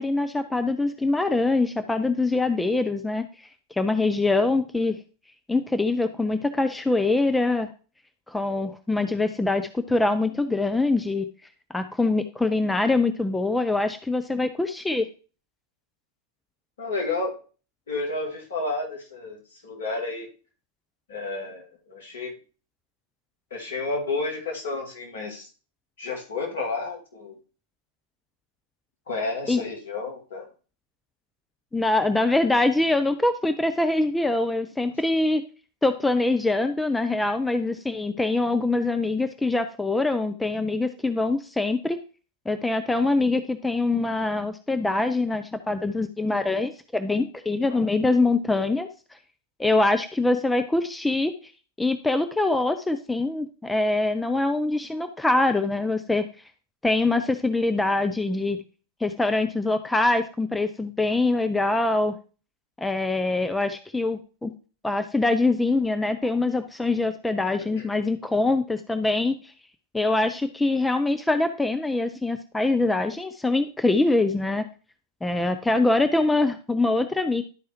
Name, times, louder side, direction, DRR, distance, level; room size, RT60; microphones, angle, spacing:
voice 1, 0.0-5.0 5.5-7.7 8.3-11.3 11.7-15.1 29.5-29.6 31.7-35.4 35.8-42.0 42.5-48.9 49.6-51.3 51.8-56.2 56.8-58.6 59.0-62.2 62.8-64.5 64.8-69.4 69.9-74.6 75.2-77.4, left 2 dB, 5° left, 9 dB, 0.5 m, -24 dB
voice 2, 16.8-17.4 17.9-20.3 21.1-22.3 23.5-25.5 26.0-27.4 29.1-30.4 47.7-47.9, left 3 dB, 60° left, -1 dB, 2.2 m, -31 dB
11.5 x 4.6 x 3.0 m, 0.37 s
figure-of-eight pair, 90°, 0 cm